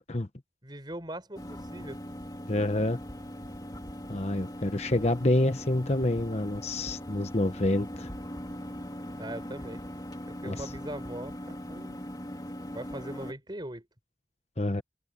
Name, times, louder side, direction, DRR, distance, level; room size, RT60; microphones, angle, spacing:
voice 1, 0.6-2.0 9.2-9.8 10.4-12.0 12.7-13.9, right 1 dB, 25° right, 6.3 m, -40 dB
sound 1, 1.3-13.3, equal, 20° left, 2.6 m, -40 dB
voice 2, 2.5-3.0 4.1-8.1 10.4-10.7 14.6-14.8, left 1 dB, 40° left, 1.1 m, -27 dB
head